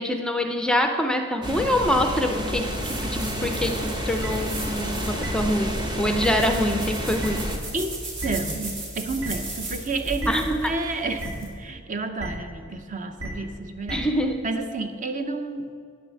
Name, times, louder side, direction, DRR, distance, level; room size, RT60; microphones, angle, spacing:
voice 1, 0.0-2.7 3.0-7.5 10.3-10.7 13.9-14.5, left 1 dB, 5° left, 5 dB, 0.5 m, -25 dB
sound 1, 1.4-7.6, equal, 20° right, 1.0 m, -29 dB
sound 2, 2.7-11.5, right 2 dB, 60° right, 2.3 m, -37 dB
sound 3, 4.2-4.3 5.2-5.3 6.2-6.3 7.2-7.3 8.2-8.3 9.2-9.3 10.2-10.3 11.2-11.3 12.2-12.3 13.2-13.3 13.9-14.0, right 1 dB, 85° right, 2.2 m, -33 dB
voice 2, 7.7-14.1 14.4-15.7, right 3 dB, 35° right, 7 dB, 0.6 m, -30 dB
9.5 x 6.7 x 7.4 m, 2.2 s
head